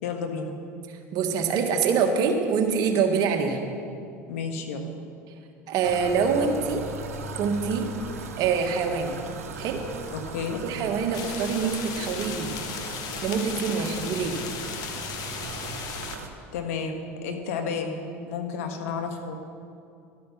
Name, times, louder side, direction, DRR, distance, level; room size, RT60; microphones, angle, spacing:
voice 1, 0.0-0.5 4.3-4.8 10.1-10.6 16.5-19.4, left 5 dB, 75° left, 4 dB, 1.4 m, -31 dB
voice 2, 1.1-3.6 5.7-6.8 7.3-7.9 8.4-9.2 9.6-9.8 10.6-12.6 13.2-14.4, right 6 dB, 60° right, 4 dB, 1.5 m, -25 dB
sound 1, 5.8-16.3, right 3 dB, 85° right, 1.1 m, -38 dB
sound 2, 11.1-16.2, left 7 dB, 55° left, 1.2 m, -36 dB
12.5 x 9.4 x 5.9 m, 2.5 s
hypercardioid pair, 75°, 8 cm